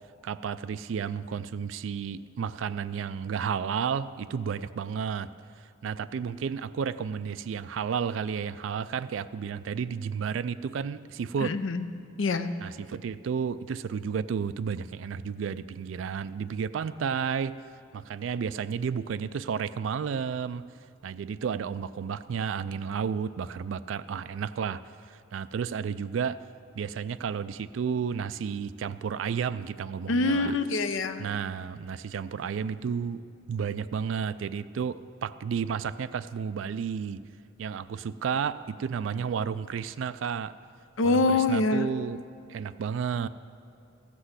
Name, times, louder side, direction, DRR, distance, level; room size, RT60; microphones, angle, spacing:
voice 1, 0.2-5.3 5.8-11.5 12.6-17.5 17.9-20.6 21.0-24.8 25.1-26.4 26.8-30.5 31.2-33.2 33.5-37.2 37.6-40.6 41.0-42.2 42.5-43.3, right 6 dB, 80° right, 13 dB, 0.3 m, -32 dB
voice 2, 11.4-11.9 12.2-12.5 30.1-31.3 41.0-41.9, left 3 dB, 85° left, 10 dB, 0.6 m, -25 dB
14.0 x 6.1 x 8.0 m, 2.7 s
head